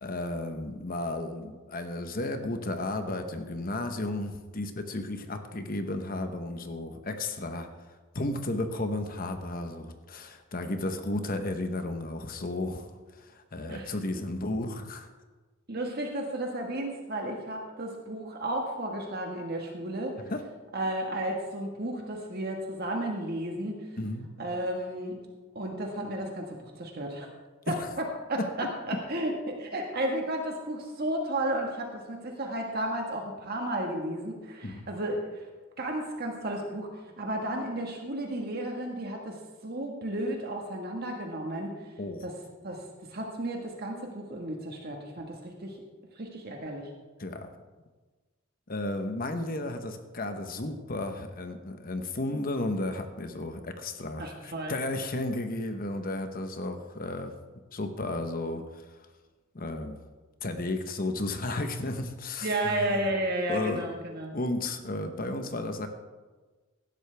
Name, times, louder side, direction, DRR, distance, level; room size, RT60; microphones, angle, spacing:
voice 1, 0.0-7.7 8.1-12.9 13.2-15.1 20.3-20.4 24.0-24.3 27.7-27.8 28.4-28.7 34.6-34.9 42.0-42.2 47.2-47.5 48.7-57.3 57.7-58.8 59.5-60.0 60.4-63.1 63.5-63.9 64.3-65.9, left 2 dB, 45° left, 7 dB, 1.0 m, -33 dB
voice 2, 13.7-14.2 15.7-20.2 20.7-24.0 24.4-25.2 25.5-27.3 27.7-27.8 28.3-28.4 28.9-35.5 35.8-39.4 39.6-41.7 42.2-42.4 42.6-42.8 43.1-45.7 46.1-46.9 54.2-54.8 62.4-64.3, right 1 dB, 50° right, 1 dB, 1.6 m, -33 dB
17.0 x 12.0 x 3.5 m, 1.3 s
head